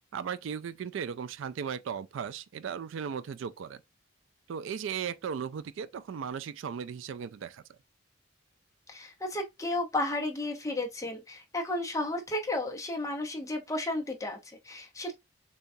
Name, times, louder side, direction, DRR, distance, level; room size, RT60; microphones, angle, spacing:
voice 1, 0.1-3.8 4.5-7.6, right 7 dB, 75° right, 0.3 m, -36 dB
voice 2, 8.9-15.1, left 2 dB, 15° left, 0.8 m, -33 dB
6.8 x 2.3 x 2.6 m
head